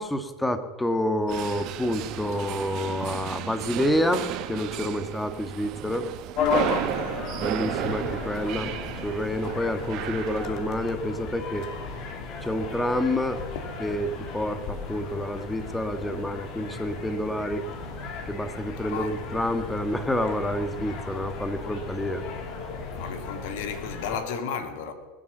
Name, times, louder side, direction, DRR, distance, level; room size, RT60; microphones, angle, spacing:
voice 1, 0.0-6.1 7.4-8.7 9.0-11.7 12.4-13.4 13.8-17.6 18.3-22.2, left 1 dB, 5° left, 1.6 m, -28 dB
sound 1, 1.3-10.5, right 12 dB, 55° right, 1.3 m, -33 dB
sound 2, 6.4-24.2, left 5 dB, 50° left, 2.6 m, -35 dB
voice 2, 6.7-7.4 9.2-9.3 13.5-13.6 18.9-19.1 23.0-24.9, left 6 dB, 70° left, 2.1 m, -34 dB
20.5 x 8.8 x 7.3 m
hypercardioid pair, 90°, 0 cm